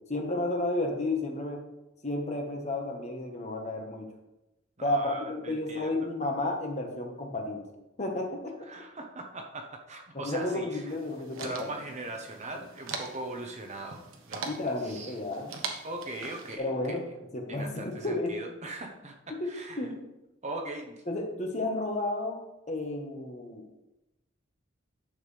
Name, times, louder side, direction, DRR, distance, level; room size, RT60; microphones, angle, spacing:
voice 1, 0.1-1.6 2.0-4.1 4.8-7.6 8.0-8.9 10.2-11.5 14.4-15.5 16.6-17.0 17.3-18.3 19.3-19.9 21.1-22.4 22.7-23.6, left 2 dB, 35° left, 2 dB, 1.3 m, -32 dB
voice 2, 4.8-6.1 8.7-10.8 11.4-14.0 14.3-14.5 14.8-15.1 15.8-17.1 17.5-20.0 20.4-21.0, right 2 dB, 35° right, 3 dB, 1.0 m, -40 dB
sound 1, 10.9-16.6, right 4 dB, 90° right, 1.3 m, -42 dB
10.5 x 7.2 x 3.3 m, 0.95 s
head